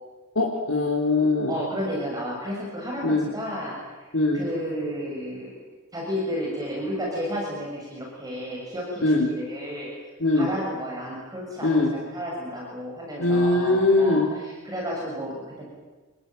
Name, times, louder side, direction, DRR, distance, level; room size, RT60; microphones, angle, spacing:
voice 1, 0.4-1.6 3.0-3.3 4.1-4.4 9.0-9.3 10.2-10.5 11.6-11.9 13.2-14.3, left 2 dB, 75° left, -2 dB, 3.7 m, -21 dB
voice 2, 1.5-4.1 4.3-5.5 5.9-9.9 10.4-15.7, equal, 20° right, -3 dB, 6.8 m, -32 dB
28.0 x 22.0 x 9.2 m, 1.3 s
head